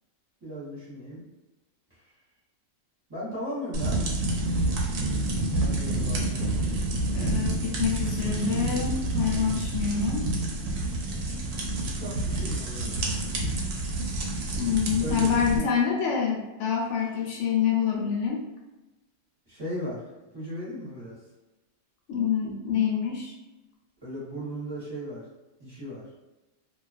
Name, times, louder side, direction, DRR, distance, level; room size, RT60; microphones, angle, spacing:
voice 1, 0.4-1.2 3.1-4.0 5.6-6.6 12.0-13.0 15.0-15.7 19.5-20.0 20.3-21.1 24.0-25.2 25.6-26.0, equal, 20° right, -10 dB, 0.9 m, -36 dB
sound 1, 3.7-15.6, right 2 dB, 75° right, 0.9 m, -28 dB
voice 2, 7.1-10.3 14.6-18.4 22.1-23.3, left 7 dB, 70° left, -1 dB, 0.9 m, -26 dB
2.3 x 2.3 x 2.4 m, 1.1 s
omnidirectional pair, 1.4 m